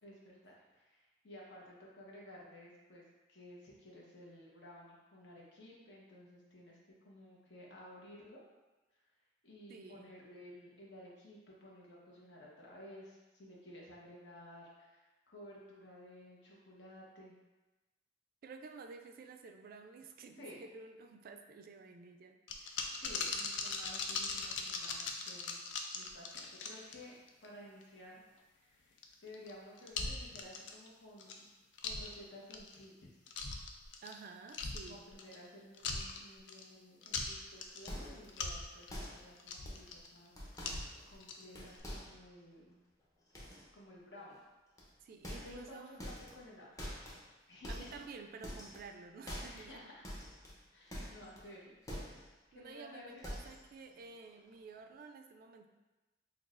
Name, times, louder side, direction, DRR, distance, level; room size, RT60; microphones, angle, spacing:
voice 1, 0.0-3.0 3.3-8.4 9.4-17.4 20.4-20.6 22.8-25.6 25.9-27.1 27.4-28.2 28.5-28.9 29.2-31.5 31.8-33.2 34.8-42.8 43.3-44.4 45.3-46.7 47.5-48.0 49.5-50.1 50.7-51.8 52.0-52.2 52.5-53.2, left 1 dB, 70° left, -4 dB, 1.0 m, -54 dB
voice 2, 9.7-10.1 18.4-22.8 34.0-35.0 45.0-46.0 47.7-49.9 50.9-51.2 52.5-55.7, right 4 dB, 55° right, 6 dB, 0.3 m, -52 dB
sound 1, 22.5-27.5 27.8-27.9 29.0-29.5 29.8-30.9 31.2-31.4 31.8-32.1 32.5-32.8 33.3-34.2 34.5-35.5 35.7-36.6 37.0-37.9 38.3-40.1 40.6-41.4 41.7-41.8, left 4 dB, 90° left, 0.4 m, -40 dB
sound 2, 37.9-38.4 38.9-39.3 39.6-39.9 40.4-41.3 41.5-42.3 43.3-43.7 44.8-44.9 45.2-45.7 46.0-46.4 46.8-47.2 47.6-48.1 48.4-48.9 49.3-49.8 50.0-51.5 51.9-52.3 52.7-52.8 53.2-53.7 54.0-54.3 54.6-54.7, equal, 20° left, 0.7 m, -46 dB
6.0 x 2.3 x 2.4 m, 1.1 s
head